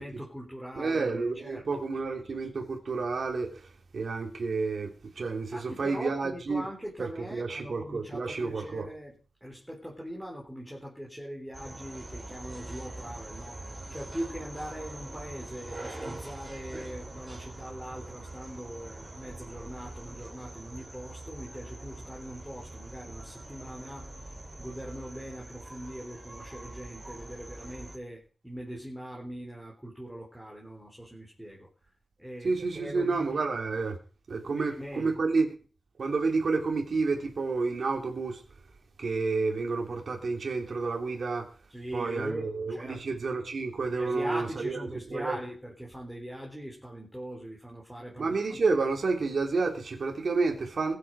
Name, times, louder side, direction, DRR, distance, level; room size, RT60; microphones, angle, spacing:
voice 1, 0.0-1.8 5.5-9.1 9.4-13.6 13.9-24.1 24.6-31.7 32.2-33.4 34.4-35.2 41.7-43.1 43.9-48.6, equal, 5° right, 3.9 m, -41 dB
voice 2, 0.7-6.6 7.0-8.9 32.4-34.0 34.3-35.5 36.0-38.4 39.0-41.5 41.9-45.4 48.2-50.9, right 4 dB, 60° right, 3.1 m, -30 dB
sound 1, 11.5-28.0, right 2 dB, 20° right, 3.8 m, -43 dB
21.5 x 8.5 x 4.8 m
wide cardioid pair, 165°, 0 cm